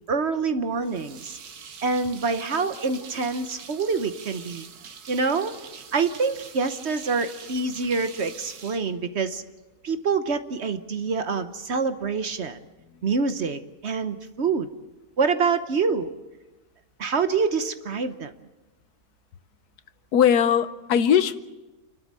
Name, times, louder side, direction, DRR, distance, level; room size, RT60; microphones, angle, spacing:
voice 1, 0.1-1.4 1.8-4.7 5.1-5.6 5.9-9.4 9.8-12.6 13.0-14.7 15.2-16.1 17.0-18.3, right 4 dB, 50° right, 10 dB, 1.1 m, -26 dB
sound 1, 0.8-9.6, right 6 dB, 85° right, 1.8 m, -44 dB
voice 2, 20.1-21.4, left 8 dB, 85° left, 13 dB, 1.4 m, -19 dB
29.0 x 12.5 x 7.5 m, 1.1 s
omnidirectional pair, 1.6 m